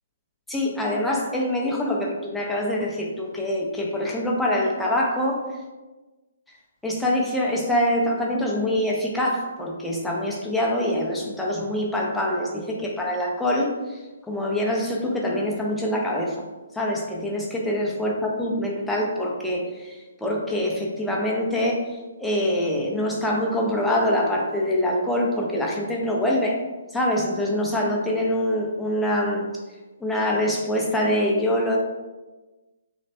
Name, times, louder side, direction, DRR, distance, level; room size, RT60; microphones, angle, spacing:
voice 1, 0.5-5.5 6.8-14.0 14.3-16.4 16.8-21.8 22.2-26.6 26.9-29.5 30.0-31.8, left 1 dB, 5° left, -2 dB, 0.4 m, -24 dB
3.1 x 2.0 x 2.6 m, 1.2 s
hypercardioid pair, 145°, 0 cm